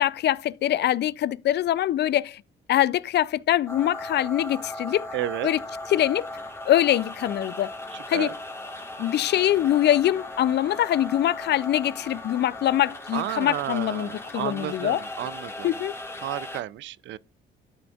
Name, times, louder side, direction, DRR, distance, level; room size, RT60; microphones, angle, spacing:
voice 1, 0.0-2.4 2.7-5.1 5.4-5.6 5.9-6.3 6.7-7.7 8.1-8.3 9.0-15.0 15.6-15.9, left 12 dB, 60° left, 0.4 m, -23 dB
sound 1, 3.7-16.6, left 1 dB, 10° left, 1.5 m, -37 dB
voice 2, 5.1-5.5 7.9-8.3 13.1-15.7 16.2-17.2, right 13 dB, 70° right, 0.4 m, -32 dB
13.5 x 5.1 x 2.4 m
cardioid pair, 90°, 20 cm